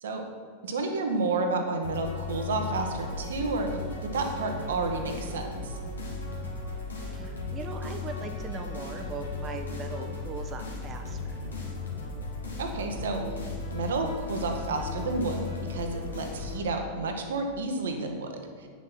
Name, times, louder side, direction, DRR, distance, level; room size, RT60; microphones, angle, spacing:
voice 1, 0.6-5.7 12.6-13.2 13.7-18.7, right 3 dB, 60° right, 4 dB, 1.3 m, -31 dB
sound 1, 1.8-16.6, left 3 dB, 75° left, 2.1 m, -36 dB
voice 2, 7.0-11.4, right 4 dB, 25° right, 6 dB, 1.0 m, -40 dB
8.9 x 6.2 x 6.0 m, 2.2 s
figure-of-eight pair, 90°, 0 cm